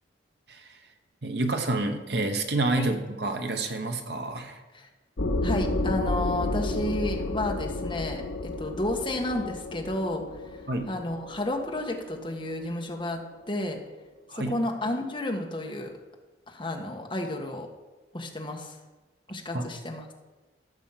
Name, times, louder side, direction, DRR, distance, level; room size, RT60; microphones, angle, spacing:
voice 1, 1.2-4.6 10.7-10.9 14.3-14.6 19.5-19.7, right 2 dB, 60° right, 5 dB, 1.2 m, -29 dB
sound 1, 5.2-12.5, left 2 dB, 90° left, 1.1 m, -31 dB
voice 2, 5.4-10.2 10.9-13.2 13.5-13.8 14.3-15.9 16.5-17.7 18.1-18.8 19.3-20.0, left 1 dB, 25° left, 1 dB, 1.3 m, -31 dB
13.5 x 6.3 x 5.7 m, 1.2 s
head